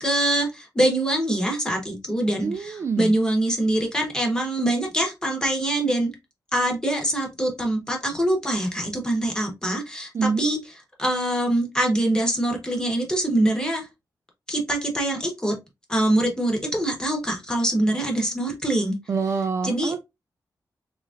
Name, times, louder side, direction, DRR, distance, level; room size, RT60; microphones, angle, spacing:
voice 1, 0.0-6.1 6.5-10.1 10.4-10.6 11.0-13.9 14.5-15.6 15.9-19.0 19.6-19.9, right 1 dB, 10° left, 1.1 m, -24 dB
voice 2, 2.4-3.1 10.1-10.5 19.1-20.1, right 5 dB, 40° right, 0.3 m, -26 dB
3.8 x 3.1 x 2.4 m
wide cardioid pair, 170°, 7 cm